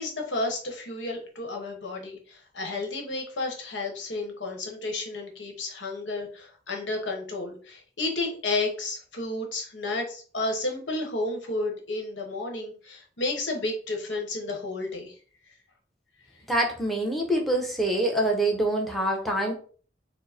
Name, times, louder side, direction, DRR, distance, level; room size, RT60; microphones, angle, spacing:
voice 1, 0.0-15.1, left 2 dB, 85° left, 2 dB, 1.1 m, -32 dB
voice 2, 16.5-19.5, right 1 dB, ahead, 1 dB, 0.8 m, -25 dB
4.5 x 2.1 x 4.2 m, 0.42 s
head